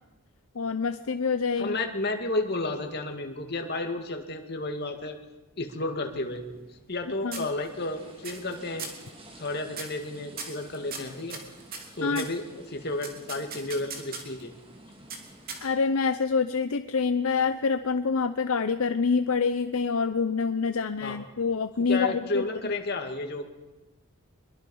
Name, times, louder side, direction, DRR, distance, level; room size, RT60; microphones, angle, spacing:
voice 1, 0.5-1.8 7.2-7.5 12.0-12.2 15.6-22.4, left 5 dB, 70° left, 9 dB, 0.7 m, -26 dB
voice 2, 1.6-5.2 5.6-6.4 6.9-8.9 9.4-11.4 12.0-14.5 21.0-21.2 21.9-23.5, left 2 dB, 45° left, 4 dB, 2.2 m, -32 dB
sound 1, 6.1-7.0 7.3-7.9 8.2-8.5 8.8-9.1 9.7-10.0 10.4-12.4 13.0-14.4 15.1-15.9, right 5 dB, 40° right, 2.9 m, -39 dB
sound 2, 7.6-15.6, right 1 dB, 25° right, 2.4 m, -51 dB
24.5 x 22.0 x 5.5 m, 1.1 s
head